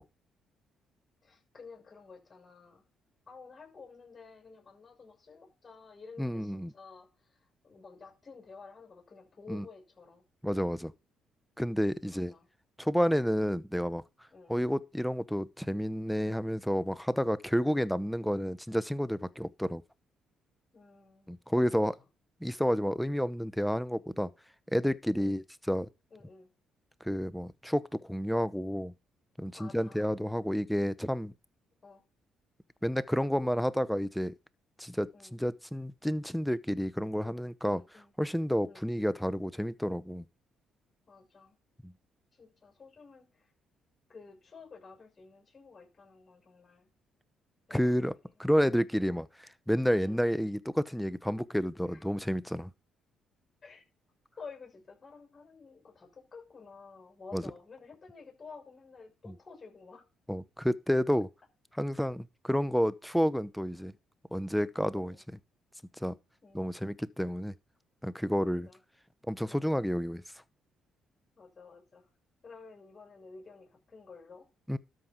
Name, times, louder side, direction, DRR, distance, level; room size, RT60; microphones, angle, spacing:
voice 1, 1.2-2.8 3.3-10.2 12.1-12.5 14.3-14.6 20.7-22.0 25.1-25.4 26.1-26.5 29.5-30.1 31.8-32.0 35.1-35.3 37.6-38.1 38.6-38.9 41.1-41.6 42.3-43.5 44.1-46.9 47.7-48.2 50.0-50.2 51.9-52.1 53.6-53.8 54.4-60.1 64.9-65.2 66.4-66.7 68.4-68.8 69.5-69.7 71.4-72.1 72.4-74.5, left 4 dB, 35° left, 6.7 m, -52 dB
voice 2, 6.2-6.7 9.5-9.6 10.4-10.9 11.6-12.3 12.8-14.0 14.5-19.8 21.3-22.0 22.4-24.3 24.7-25.9 27.0-28.9 29.4-31.3 32.8-34.3 34.8-37.8 38.2-40.2 41.8-41.9 47.7-52.7 57.3-57.4 60.3-61.3 61.8-63.9 64.3-65.2 66.0-66.1 66.5-67.5 68.0-68.7 69.3-70.2 74.7-74.8, equal, ahead, 0.9 m, -30 dB
13.0 x 5.5 x 4.6 m
hypercardioid pair, 50°, 0 cm